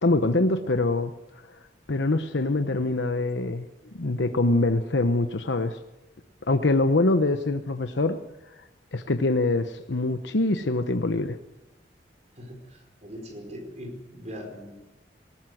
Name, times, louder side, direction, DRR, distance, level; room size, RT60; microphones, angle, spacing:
voice 1, 0.0-1.1 1.5-1.6 1.9-3.7 3.9-5.8 6.5-8.2 8.9-11.4, left 2 dB, 85° left, 8 dB, 1.0 m, -24 dB
voice 2, 12.4-14.7, equal, 40° right, 4 dB, 4.7 m, -40 dB
19.5 x 19.5 x 7.9 m, 1.0 s
head